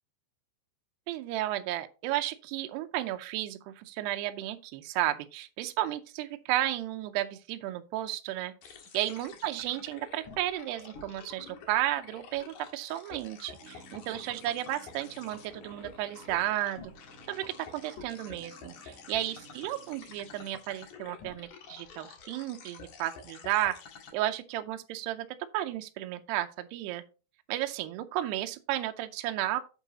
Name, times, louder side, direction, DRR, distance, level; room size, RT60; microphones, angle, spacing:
voice 1, 1.1-8.5 8.9-16.9 17.3-23.8 24.1-25.3 25.5-27.0 27.5-29.6, right 14 dB, 80° right, 2.6 m, -33 dB
sound 1, 8.6-24.1, left 5 dB, 60° left, 2.4 m, -49 dB
sound 2, 13.6-20.5, right 5 dB, 60° right, 2.5 m, -56 dB
9.5 x 8.1 x 2.8 m
omnidirectional pair, 5.1 m